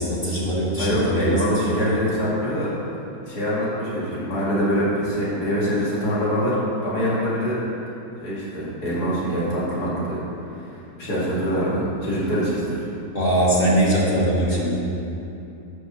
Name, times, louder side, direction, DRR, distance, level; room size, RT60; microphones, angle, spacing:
voice 1, 0.0-2.2 13.1-14.8, right 1 dB, 35° left, -6 dB, 1.4 m, -22 dB
voice 2, 0.8-2.7 3.3-7.5 8.2-10.2 10.6-10.7 11.0-12.9, equal, 75° left, -8 dB, 2.6 m, -24 dB
6.3 x 5.2 x 6.8 m, 2.8 s
omnidirectional pair, 1.7 m